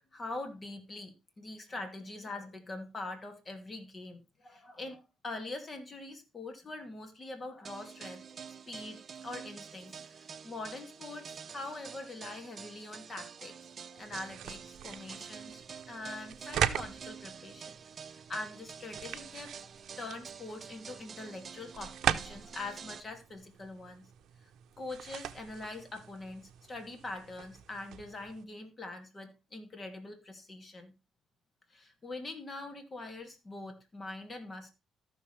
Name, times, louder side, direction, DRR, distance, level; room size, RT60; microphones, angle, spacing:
voice 1, 0.0-15.6 15.9-17.8 18.1-24.1 24.4-24.5 24.8-30.9 31.7-34.7, left 2 dB, 35° left, 5 dB, 2.5 m, -43 dB
sound 1, 7.6-23.0, right 7 dB, 45° right, 0.8 m, -48 dB
sound 2, 14.0-28.4, right 10 dB, 75° right, 0.7 m, -40 dB
14.0 x 6.4 x 3.3 m, 0.26 s
cardioid pair, 90°, 0 cm